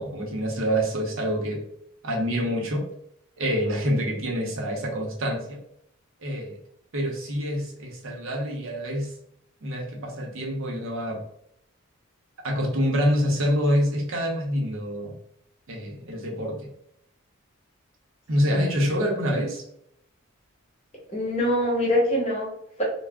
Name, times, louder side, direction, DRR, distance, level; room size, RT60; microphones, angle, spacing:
voice 1, 0.0-1.6 2.0-2.9 3.4-5.6 6.2-6.6 6.9-9.1 9.6-11.2 12.4-15.2 15.7-16.7 18.3-19.6, equal, 70° right, -1 dB, 0.7 m, -26 dB
voice 2, 21.1-22.8, left 1 dB, 30° left, -4 dB, 0.9 m, -25 dB
2.3 x 2.0 x 3.3 m, 0.72 s
head